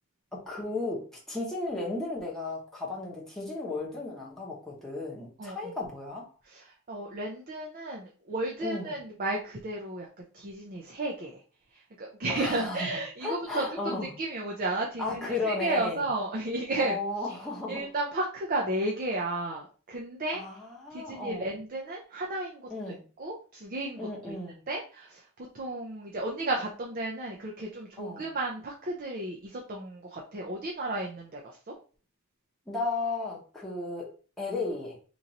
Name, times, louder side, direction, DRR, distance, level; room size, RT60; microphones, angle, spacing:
voice 1, 0.5-6.3 8.6-9.0 12.3-12.9 13.2-14.1 15.0-16.0 16.8-17.8 20.3-21.5 22.7-23.0 24.0-24.6 28.0-28.3 32.7-34.1 34.4-35.0, left 3 dB, ahead, -5 dB, 1.0 m, -34 dB
voice 2, 5.4-5.7 6.5-10.1 10.3-11.4 11.7-17.0 17.2-17.4 17.7-20.4 20.9-24.4 24.7-25.2 25.5-31.7, right 2 dB, 40° right, -1 dB, 0.5 m, -33 dB
3.0 x 2.6 x 3.9 m, 0.39 s
head